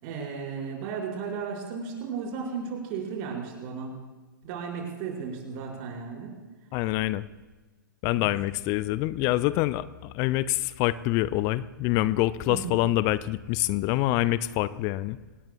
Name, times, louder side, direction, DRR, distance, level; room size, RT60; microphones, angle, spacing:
voice 1, 0.0-3.9 4.4-6.3 8.1-8.3 12.5-12.8, right 6 dB, 40° right, -1 dB, 5.4 m, -34 dB
voice 2, 6.7-7.3 8.0-15.2, left 16 dB, 30° left, 17 dB, 0.5 m, -26 dB
26.0 x 19.0 x 2.4 m, 1.3 s
figure-of-eight pair, 110°, 11 cm